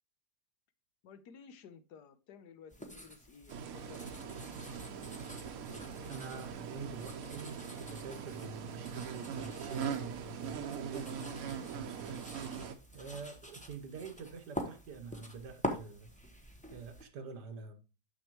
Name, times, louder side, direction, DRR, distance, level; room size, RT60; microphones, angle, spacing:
voice 1, 1.0-4.4, left 6 dB, 80° left, 1.3 m, -55 dB
sound 1, 2.7-17.0, equal, 5° left, 0.7 m, -46 dB
sound 2, 3.5-12.7, right 7 dB, 65° right, 1.1 m, -41 dB
voice 2, 6.1-12.2 12.9-16.1 16.7-17.8, right 5 dB, 85° right, 1.6 m, -46 dB
6.7 x 6.6 x 2.9 m
omnidirectional pair, 1.7 m